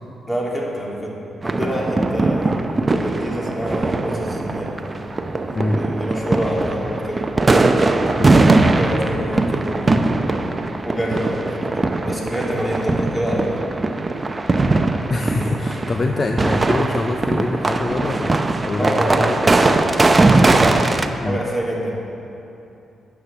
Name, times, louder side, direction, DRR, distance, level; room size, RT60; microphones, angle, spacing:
voice 1, 0.3-1.2 1.4-2.6 3.0-4.8 5.8-7.2 8.8-10.2 10.8-13.6 18.8-19.8 21.2-21.9, equal, 20° left, -3 dB, 2.9 m, -26 dB
sound 1, 1.4-21.1, right 2 dB, 30° right, 0.7 m, -20 dB
voice 2, 15.1-19.4 21.2-21.4, left 2 dB, 40° left, 5 dB, 0.6 m, -24 dB
9.6 x 7.5 x 6.8 m, 2.8 s
supercardioid pair, 50°, 0 cm